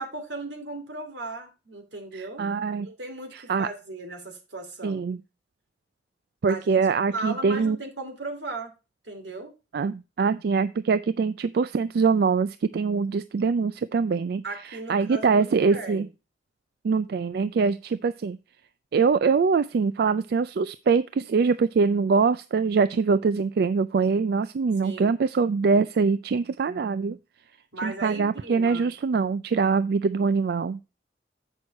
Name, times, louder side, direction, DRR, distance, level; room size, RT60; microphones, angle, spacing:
voice 1, 0.0-2.5 2.8-5.0 6.5-6.8 7.1-8.7 9.0-9.5 14.4-16.0 24.8-25.1 27.7-28.9, right 2 dB, 85° right, 4 dB, 2.6 m, -36 dB
voice 2, 2.1-2.9 3.3-3.7 4.8-5.2 6.4-7.8 9.7-16.1 16.8-18.4 18.9-27.2 27.8-30.8, right 5 dB, 60° right, 15 dB, 0.3 m, -23 dB
8.0 x 6.2 x 4.2 m, 0.29 s
head